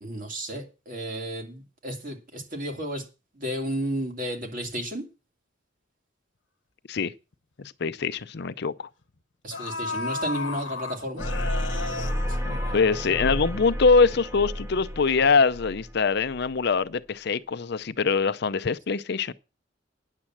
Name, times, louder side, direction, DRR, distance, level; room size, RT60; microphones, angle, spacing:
voice 1, 0.0-3.0 3.3-5.0 9.4-11.3 12.3-12.4, equal, 45° right, 2.6 m, -32 dB
sound 1, 7.3-7.4 7.8-8.0 9.0-9.1 9.5-13.4 13.8-13.9, left 3 dB, 75° left, 1.2 m, -34 dB
voice 2, 7.6-8.9 12.5-19.3, left 4 dB, 60° left, 0.6 m, -23 dB
sound 2, 11.2-16.5, equal, 15° right, 1.6 m, -31 dB
9.9 x 7.5 x 7.3 m
head